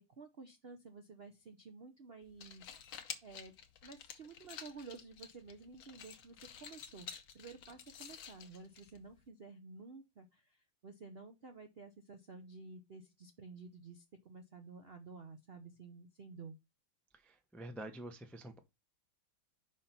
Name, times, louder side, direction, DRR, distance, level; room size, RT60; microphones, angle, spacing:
voice 1, 0.0-3.6 3.8-7.1 7.3-16.6, right 4 dB, 60° right, 0.6 m, -52 dB
sound 1, 2.2-9.3, left 8 dB, 80° left, 1.7 m, -51 dB
voice 2, 17.2-18.6, right 1 dB, ahead, 0.3 m, -47 dB
5.6 x 4.9 x 5.8 m
omnidirectional pair, 2.1 m